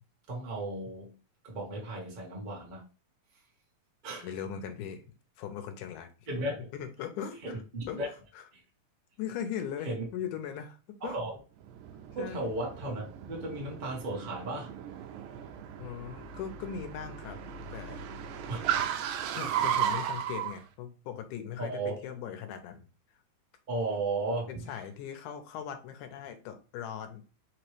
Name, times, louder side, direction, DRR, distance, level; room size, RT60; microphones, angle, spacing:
voice 1, 0.3-1.1 1.4-2.8 4.0-4.3 6.3-6.7 7.4-8.1 9.8-10.0 11.0-11.3 12.1-14.7 18.5-18.6 21.6-21.9 23.7-24.7, right 2 dB, 45° right, -3 dB, 0.6 m, -35 dB
voice 2, 4.2-6.1 6.7-8.0 8.3-8.4 9.2-10.8 11.0-11.2 12.2-12.4 15.8-17.4 17.7-18.0 19.3-22.9 24.5-27.2, left 8 dB, 90° left, 7 dB, 2.2 m, -39 dB
Car, 11.6-20.5, right 9 dB, 80° right, 2.0 m, -35 dB
5.2 x 3.0 x 3.1 m, 0.34 s
omnidirectional pair, 3.5 m